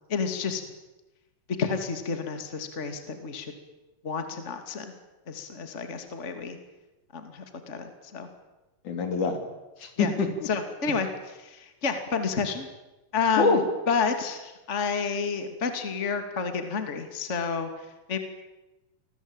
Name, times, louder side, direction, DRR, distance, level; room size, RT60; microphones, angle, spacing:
voice 1, 0.1-0.6 1.6-3.5 4.0-4.9 5.3-6.6 7.1-8.3 10.0-10.1 10.5-11.1 11.4-12.7 13.1-18.2, left 5 dB, 25° left, 7 dB, 2.5 m, -30 dB
voice 2, 8.8-9.4 9.8-10.5 13.4-13.6, left 4 dB, 65° left, 6 dB, 4.7 m, -25 dB
29.0 x 21.0 x 9.0 m, 1.0 s
omnidirectional pair, 3.8 m